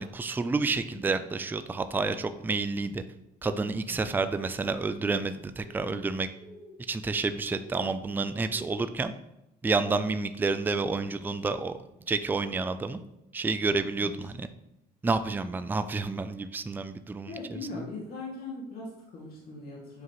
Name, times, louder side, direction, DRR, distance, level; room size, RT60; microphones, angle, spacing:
voice 1, 0.0-3.0 3.4-6.3 6.9-9.1 9.6-11.8 12.1-13.0 13.3-14.5 15.0-17.6, right 3 dB, 10° right, 10 dB, 0.4 m, -29 dB
sound 1, 4.6-4.8 5.6-6.1 6.3-6.8 7.5-7.9 8.5-9.0, left 1 dB, 15° left, 1.4 m, -49 dB
voice 2, 17.3-20.0, left 3 dB, 65° left, -5 dB, 2.3 m, -40 dB
8.3 x 4.8 x 3.0 m, 0.86 s
cardioid pair, 110°, 17 cm